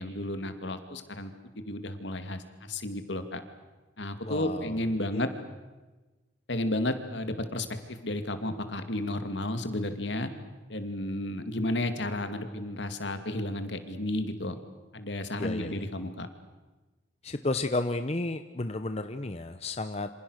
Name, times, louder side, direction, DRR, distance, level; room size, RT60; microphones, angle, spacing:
voice 1, 0.0-3.4 4.0-5.3 6.5-10.3 10.7-14.6 14.9-16.3, left 1 dB, 70° left, 8 dB, 2.5 m, -32 dB
voice 2, 4.2-4.8 5.1-5.2 15.4-15.8 17.2-20.1, left 2 dB, 35° left, 9 dB, 0.8 m, -32 dB
27.5 x 26.5 x 6.6 m, 1.2 s
head